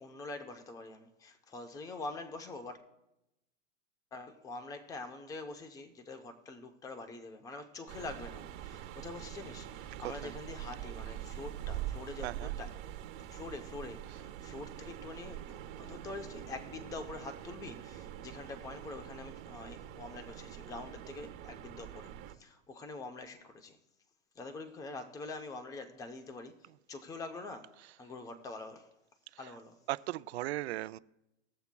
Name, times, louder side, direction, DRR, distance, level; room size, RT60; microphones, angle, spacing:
voice 1, 0.0-2.8 4.1-12.7 13.3-22.1 22.4-23.8 24.4-26.5 26.9-28.9 29.4-29.8, left 3 dB, 10° left, 0.6 m, -45 dB
sound 1, 7.9-22.3, right 11 dB, 30° right, 0.9 m, -44 dB
voice 2, 12.2-12.5 29.4-29.5 29.9-31.0, right 16 dB, 55° right, 0.5 m, -37 dB
20.5 x 7.0 x 2.2 m
hypercardioid pair, 140°, 39 cm